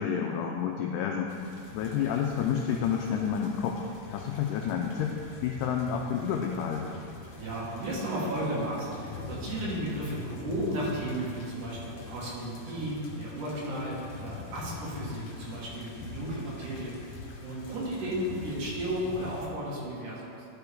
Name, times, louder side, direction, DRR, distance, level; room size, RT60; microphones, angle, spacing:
voice 1, 0.0-1.3 1.7-3.8 4.1-5.2 5.4-7.0, left 7 dB, 80° left, 1 dB, 1.9 m, -29 dB
sound 1, 1.3-19.5, left 4 dB, 65° left, 2.0 m, -44 dB
voice 2, 7.3-20.5, right 1 dB, 70° right, -6 dB, 3.2 m, -34 dB
12.0 x 5.1 x 3.5 m, 2.5 s
omnidirectional pair, 3.9 m